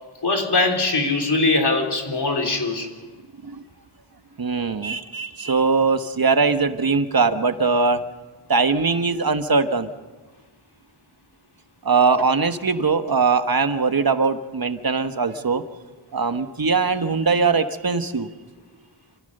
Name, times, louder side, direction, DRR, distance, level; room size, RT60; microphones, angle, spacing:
voice 1, 0.2-2.9, left 3 dB, 55° left, 2 dB, 3.6 m, -21 dB
voice 2, 4.4-8.0 8.5-9.9 11.8-15.6 16.1-18.3, right 4 dB, 45° right, 9 dB, 1.3 m, -21 dB
26.5 x 15.0 x 6.7 m, 1.3 s
wide cardioid pair, 65°, 48 cm